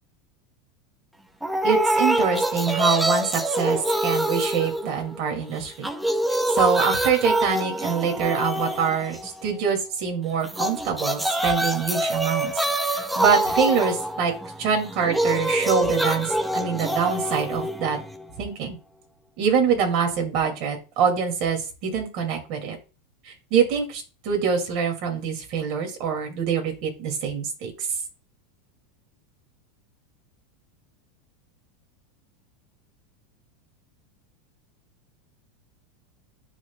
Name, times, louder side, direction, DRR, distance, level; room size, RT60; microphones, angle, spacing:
sound 1, 1.4-5.4 5.7-9.5 10.4-18.4, right 1 dB, 5° right, 0.5 m, -25 dB
voice 1, 1.6-5.9 6.6-12.5 12.9-14.3 14.6-18.0 18.4-18.8 19.4-22.8 23.2-27.9, right 6 dB, 50° right, 3 dB, 2.4 m, -25 dB
10.5 x 4.0 x 2.3 m, 0.32 s
supercardioid pair, 150°, 0 cm